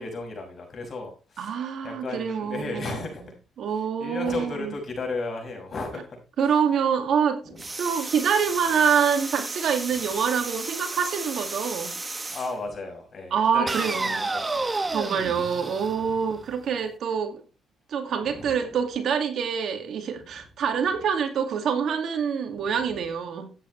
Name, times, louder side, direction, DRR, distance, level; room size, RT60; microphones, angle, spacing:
voice 1, 0.0-1.5 1.8-3.3 4.0-6.1 7.4-7.6 12.3-13.7 14.0-14.7 16.0-16.1 18.3-18.5 22.5-23.0, left 3 dB, 45° left, 6.6 m, -34 dB
voice 2, 1.4-3.1 3.6-4.8 6.4-12.0 13.3-14.3 14.9-17.4 17.9-23.5, right 7 dB, 65° right, 2.3 m, -26 dB
sound 1, 7.6-12.5 13.7-16.6, right 3 dB, 20° right, 1.2 m, -32 dB
13.5 x 9.4 x 3.3 m
cardioid pair, 90°, 0 cm